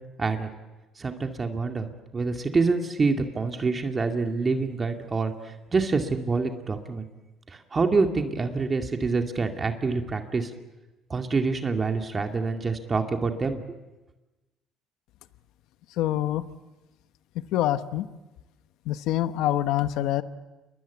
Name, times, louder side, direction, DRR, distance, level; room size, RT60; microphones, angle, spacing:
voice 1, 1.0-1.9 2.1-7.1 7.5-10.5 11.1-13.6, right 4 dB, 25° right, 4 dB, 2.2 m, -26 dB
voice 2, 16.0-16.4 17.5-18.1 18.9-20.2, left 13 dB, 75° left, 11 dB, 1.1 m, -25 dB
28.5 x 22.0 x 8.3 m, 1.1 s
cardioid pair, 105°, 0 cm